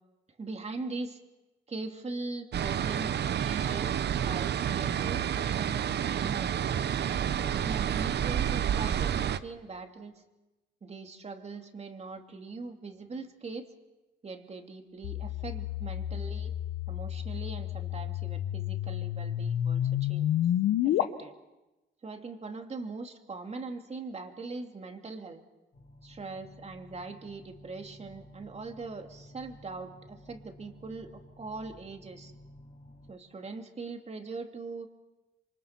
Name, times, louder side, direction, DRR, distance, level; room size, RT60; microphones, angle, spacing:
voice 1, 0.4-1.2 1.7-6.5 7.2-10.2 10.8-13.7 14.2-16.6 16.9-20.3 20.8-21.3 22.0-25.4 26.0-32.3 33.1-34.9, right 3 dB, 35° right, 5 dB, 2.7 m, -41 dB
sound 1, 2.5-9.4, right 9 dB, 60° right, 0.9 m, -29 dB
sound 2, 15.0-21.0, left 12 dB, 85° left, 1.0 m, -30 dB
sound 3, 25.7-33.1, left 1 dB, 35° left, 3.5 m, -53 dB
27.5 x 24.5 x 6.0 m, 1.0 s
cardioid pair, 90°, 20 cm